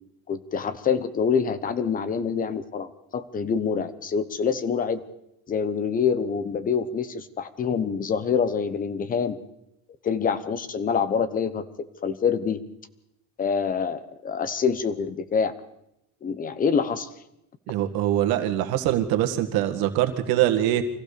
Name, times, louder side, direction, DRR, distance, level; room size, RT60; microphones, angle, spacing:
voice 1, 0.3-5.0 5.5-9.4 10.0-12.6 13.4-15.5 16.2-17.1, left 6 dB, 25° left, 13 dB, 1.0 m, -26 dB
voice 2, 17.7-20.8, right 12 dB, 75° right, 6 dB, 1.9 m, -23 dB
25.0 x 15.5 x 6.9 m, 0.83 s
cardioid pair, 175°, 36 cm